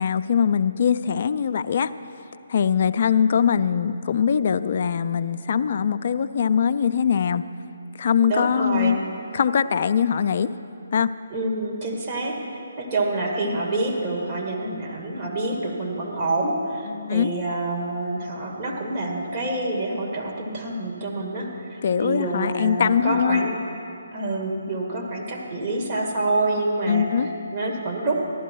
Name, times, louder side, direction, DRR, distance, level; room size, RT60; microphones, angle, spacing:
voice 1, 0.0-1.9 2.5-7.4 8.0-9.0 9.3-10.5 10.9-11.1 16.9-17.3 21.8-23.5 26.9-27.3, left 7 dB, 50° left, 11 dB, 0.4 m, -22 dB
voice 2, 8.3-9.0 11.3-12.4 12.8-23.6 24.1-28.2, right 2 dB, 35° right, -2 dB, 2.2 m, -27 dB
14.5 x 12.0 x 4.7 m, 2.6 s
figure-of-eight pair, 150°, 0 cm